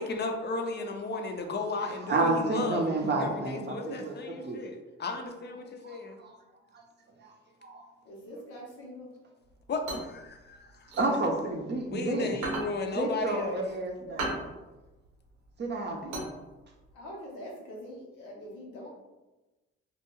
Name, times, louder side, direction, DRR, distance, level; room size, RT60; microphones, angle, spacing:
voice 1, 0.0-2.8 3.2-6.2 9.7-10.9 11.9-13.6, left 3 dB, 35° left, 4 dB, 0.5 m, -34 dB
voice 2, 2.1-4.6 5.8-6.3 7.2-7.3 7.6-7.8 10.9-12.4 13.0-14.5 15.6-16.2, right 2 dB, 35° right, 1 dB, 0.6 m, -30 dB
voice 3, 8.0-9.1 16.9-18.9, equal, 85° left, -3 dB, 0.8 m, -44 dB
sound 1, 9.5-11.9 12.3-16.9, right 2 dB, 90° right, 0.7 m, -37 dB
2.3 x 2.2 x 3.0 m, 1.1 s
supercardioid pair, 55°, 30 cm